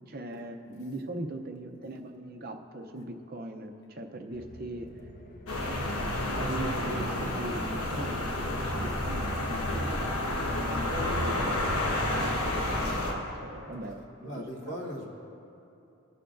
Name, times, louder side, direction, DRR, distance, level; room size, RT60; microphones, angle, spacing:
voice 1, 0.0-4.9 5.6-11.6 12.0-14.8, right 1 dB, 45° right, 5 dB, 0.6 m, -40 dB
sound 1, 4.3-10.0, left 2 dB, 40° left, 0.6 m, -47 dB
sound 2, 5.5-13.1, left 1 dB, 90° left, 1.2 m, -30 dB
voice 2, 14.2-15.1, equal, 55° left, -1 dB, 1.2 m, -38 dB
19.0 x 6.9 x 2.5 m, 2.8 s
head